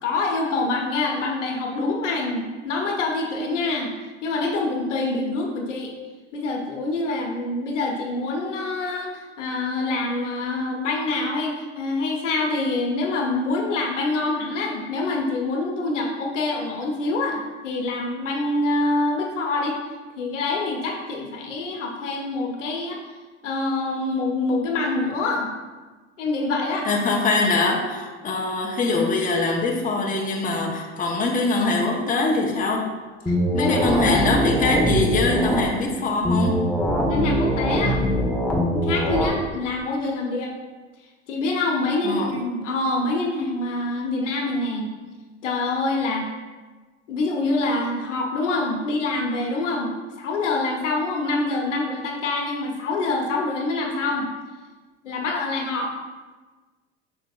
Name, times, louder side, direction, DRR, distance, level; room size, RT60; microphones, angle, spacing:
voice 1, 0.0-3.9 4.2-5.9 6.3-19.8 20.2-23.0 23.4-25.5 26.2-26.9 33.3-34.4 37.1-38.1 38.7-40.5 41.3-44.9 45.4-46.3 47.1-54.3 55.0-55.9, left 2 dB, 80° left, 0 dB, 1.2 m, -25 dB
voice 2, 26.8-32.9 33.5-36.6 42.0-42.3, left 3 dB, 20° left, 0 dB, 1.1 m, -23 dB
sound 1, 33.3-35.6 36.2-39.3, equal, ahead, 1.2 m, -22 dB
6.6 x 6.2 x 2.5 m, 1.3 s
hypercardioid pair, 80°, 36 cm